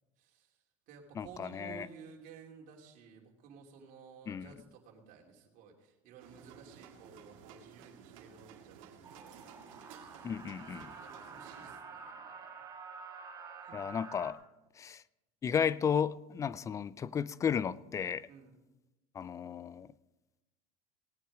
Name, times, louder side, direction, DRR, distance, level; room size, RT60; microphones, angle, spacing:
voice 1, 0.2-0.6 0.9-10.3 10.7-12.5 13.6-13.8 18.3-18.6, right 6 dB, 55° right, 2.9 m, -55 dB
voice 2, 1.2-1.9 4.3-4.5 10.2-10.9 13.7-14.4 14.8-15.0 15.4-18.3 19.2-19.9, left 7 dB, 20° left, 0.3 m, -34 dB
sound 1, 6.2-11.8, right 7 dB, 90° right, 1.8 m, -55 dB
sound 2, 9.0-14.3, right 5 dB, 20° right, 2.0 m, -49 dB
18.5 x 9.1 x 4.9 m
supercardioid pair, 140°, 17 cm